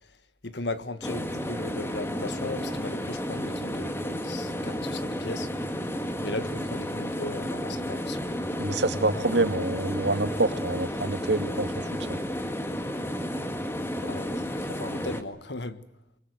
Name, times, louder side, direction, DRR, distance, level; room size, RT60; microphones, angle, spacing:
voice 1, 0.4-5.5 6.2-8.2 14.0-15.8, left 2 dB, 80° left, 1.6 m, -37 dB
sound 1, 1.0-15.2, equal, 15° left, 1.8 m, -32 dB
voice 2, 8.6-11.7 12.1-12.2, right 2 dB, 85° right, 2.2 m, -26 dB
25.5 x 23.0 x 7.9 m
head